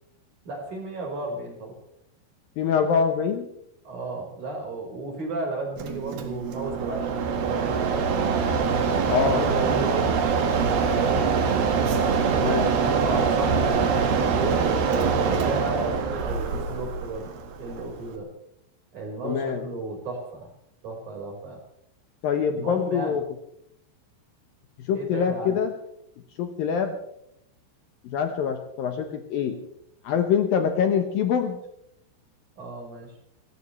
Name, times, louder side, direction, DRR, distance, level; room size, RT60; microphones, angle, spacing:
voice 1, 0.4-1.8 3.8-8.1 9.1-10.1 10.8-11.3 12.3-17.3 17.6-18.3 18.9-20.5 20.8-21.6 22.5-23.2 24.9-25.6 32.6-33.1, right 2 dB, 40° right, 1 dB, 5.9 m, -33 dB
voice 2, 2.6-3.5 9.1-9.5 12.4-12.7 19.2-19.6 22.2-23.2 24.8-25.7 26.4-27.0 28.0-29.6 30.0-31.6, left 7 dB, 75° left, 6 dB, 2.1 m, -24 dB
Mechanisms, 5.8-18.2, right 5 dB, 60° right, 3.3 m, -24 dB
28.0 x 15.0 x 3.3 m, 0.76 s
omnidirectional pair, 5.7 m